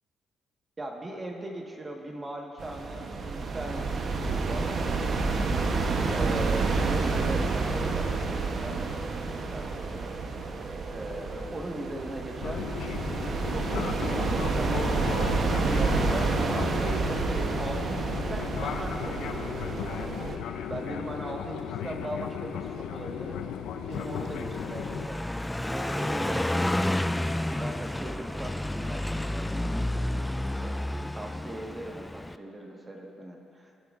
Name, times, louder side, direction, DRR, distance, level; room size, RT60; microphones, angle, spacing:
voice 1, 0.8-8.8 9.5-10.1 10.9-12.7 13.2-15.3 15.7-20.1 20.7-33.8, right 1 dB, 30° right, 0 dB, 1.5 m, -39 dB
sound 1, 2.6-20.4, right 4 dB, 55° right, 0.9 m, -29 dB
Fixed-wing aircraft airplane, 12.4-25.1, left 8 dB, 85° left, 0.5 m, -35 dB
Car passing by, 23.9-32.4, left 1 dB, 10° left, 0.3 m, -31 dB
20.0 x 9.7 x 2.5 m, 2.8 s
cardioid pair, 80°, 0 cm